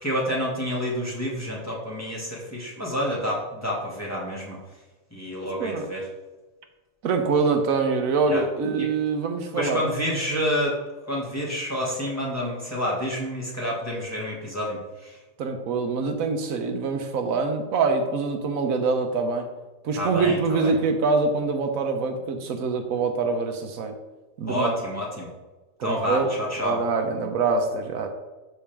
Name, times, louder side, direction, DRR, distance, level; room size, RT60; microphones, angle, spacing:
voice 1, 0.0-4.6 5.1-6.1 8.3-8.4 8.8-8.9 9.5-10.8 11.1-15.2 19.9-20.7 24.5-25.3 25.8-26.8, equal, 10° left, -4 dB, 1.9 m, -28 dB
voice 2, 7.0-9.8 15.4-19.5 19.8-23.9 24.4-24.7 25.8-26.3 26.6-28.1, right 4 dB, 80° right, 5 dB, 1.3 m, -24 dB
12.0 x 4.3 x 3.5 m, 1.2 s
omnidirectional pair, 1.4 m